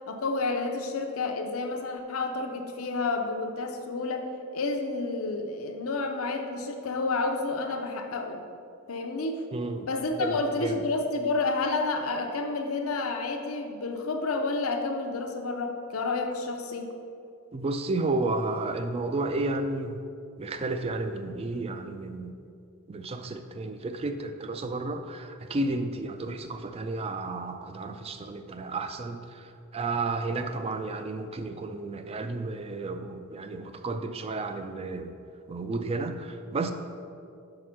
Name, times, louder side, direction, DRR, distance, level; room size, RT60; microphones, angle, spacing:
voice 1, 0.1-8.4 8.9-9.4 9.9-16.9, left 3 dB, 80° left, 4 dB, 0.6 m, -30 dB
voice 2, 9.5-9.9 10.2-10.8 17.5-20.0 20.4-22.3 22.9-35.1 35.5-36.7, right 2 dB, 25° right, 8 dB, 0.3 m, -32 dB
5.1 x 4.8 x 5.8 m, 2.4 s
head